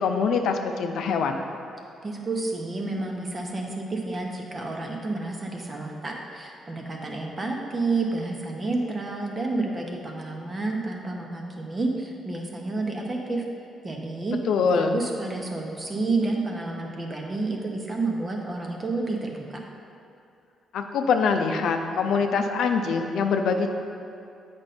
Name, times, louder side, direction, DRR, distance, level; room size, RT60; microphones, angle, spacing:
voice 1, 0.0-1.4 14.5-15.0 20.7-23.7, left 5 dB, 75° left, 5 dB, 0.5 m, -24 dB
voice 2, 2.0-13.5 13.8-14.4 14.7-19.6, right 3 dB, 30° right, 1 dB, 1.1 m, -30 dB
7.9 x 5.3 x 4.3 m, 2.5 s
cardioid pair, 90°, 0 cm